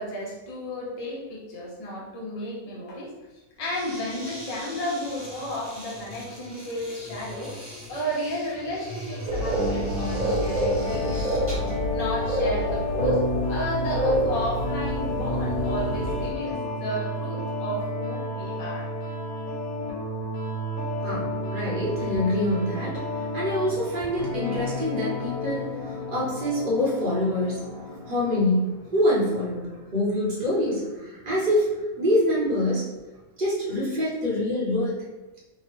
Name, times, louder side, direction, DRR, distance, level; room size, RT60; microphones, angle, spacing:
voice 1, 0.0-3.1 3.6-7.6 7.9-11.4 11.9-13.2 13.5-18.9 21.6-21.8, equal, 40° left, -5 dB, 0.5 m, -33 dB
sound 1, 3.6-11.8, equal, 10° right, 0.8 m, -41 dB
sound 2, 9.3-16.3, right 1 dB, 75° right, 1.0 m, -27 dB
sound 3, 9.5-28.4, left 1 dB, 75° left, 1.2 m, -31 dB
voice 2, 21.0-31.7 32.0-32.8 33.4-35.0, left 1 dB, 45° right, -6 dB, 0.9 m, -26 dB
2.9 x 2.1 x 3.0 m, 1.1 s
omnidirectional pair, 1.5 m